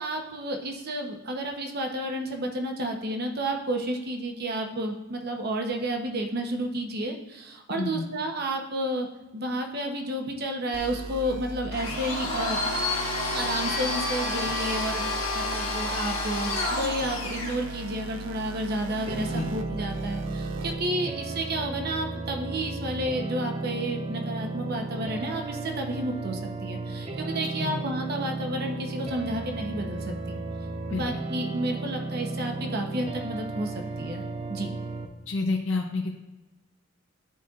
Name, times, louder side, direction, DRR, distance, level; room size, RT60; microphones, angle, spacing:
voice 1, 0.0-9.1 9.3-12.6 13.3-30.4 30.9-34.2 34.5-34.8, right 1 dB, 50° right, 3 dB, 0.8 m, -31 dB
voice 2, 7.7-8.1 19.3-19.5 27.6-27.8 30.9-31.1 35.3-36.2, left 3 dB, 65° left, 2 dB, 0.6 m, -29 dB
sound 1, 10.7-20.7, right 3 dB, 80° right, 0.6 m, -38 dB
Domestic sounds home sounds, 11.7-17.6, left 2 dB, 85° left, 1.7 m, -29 dB
sound 2, 19.1-35.1, right 2 dB, 30° right, 0.5 m, -34 dB
11.0 x 4.3 x 2.4 m, 1.1 s
head